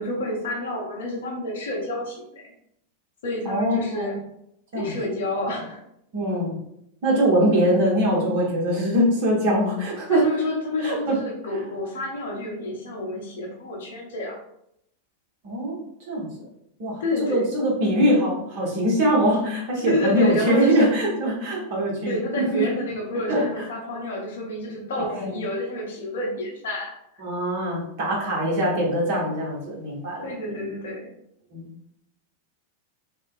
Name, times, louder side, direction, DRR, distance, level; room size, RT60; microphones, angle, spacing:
voice 1, 0.0-2.5 3.2-4.2 4.7-5.8 10.1-14.4 17.0-17.5 19.8-20.9 22.0-26.9 30.2-31.1, left 1 dB, 60° left, -1 dB, 0.7 m, -29 dB
voice 2, 3.4-4.1 4.7-5.0 6.1-6.6 7.0-10.2 10.8-11.2 15.4-15.8 16.1-16.5 16.8-22.6 23.3-23.6 24.9-25.4 27.2-30.7 31.5-31.7, equal, 50° right, -3 dB, 1.0 m, -23 dB
3.0 x 2.2 x 2.5 m, 0.76 s
figure-of-eight pair, 90°, 0 cm